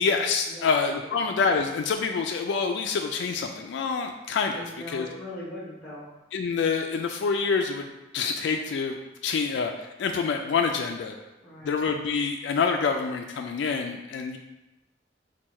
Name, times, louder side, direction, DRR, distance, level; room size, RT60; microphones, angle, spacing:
voice 1, 0.0-5.1 6.3-9.0 9.2-11.2 11.6-14.4, left 5 dB, 65° left, 5 dB, 0.3 m, -27 dB
voice 2, 4.5-6.1 11.4-11.8, left 1 dB, 5° left, -6 dB, 0.9 m, -40 dB
4.5 x 2.3 x 4.2 m, 0.99 s
head